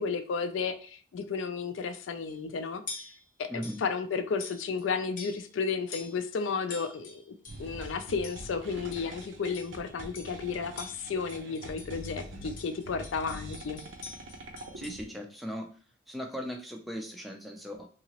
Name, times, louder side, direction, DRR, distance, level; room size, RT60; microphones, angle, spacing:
voice 1, 0.0-2.8 3.4-7.2 7.6-13.8, left 5 dB, 85° left, 9 dB, 0.4 m, -33 dB
sound 1, 2.3-2.5 2.9-3.2 3.6-3.9 4.4-4.9 5.2-5.6 5.9-6.2 6.7-7.7 8.2-8.5 8.9-9.2 9.5-9.8 10.1-10.4 10.8-12.2 12.6-15.0, left 4 dB, 45° left, 0.6 m, -45 dB
voice 2, 3.5-3.8 14.7-15.7 16.1-17.9, equal, ahead, 2 dB, 0.3 m, -38 dB
sound 2, 7.5-15.0, right 1 dB, 85° right, 0.6 m, -44 dB
2.9 x 2.8 x 2.8 m, 0.42 s
head